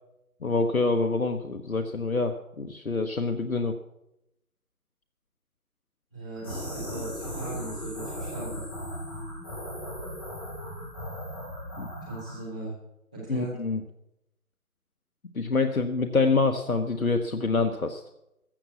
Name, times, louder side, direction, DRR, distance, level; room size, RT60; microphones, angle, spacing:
voice 1, 0.4-3.8 11.8-11.9 13.3-13.8 15.3-18.0, left 3 dB, 65° left, 6 dB, 1.1 m, -26 dB
voice 2, 6.1-8.6 12.0-12.7 13.1-13.6, right 2 dB, 5° right, -10 dB, 1.6 m, -38 dB
sound 1, 6.3-12.4, equal, 15° left, 2.7 m, -37 dB
15.0 x 7.0 x 8.3 m, 0.85 s
figure-of-eight pair, 170°, 45 cm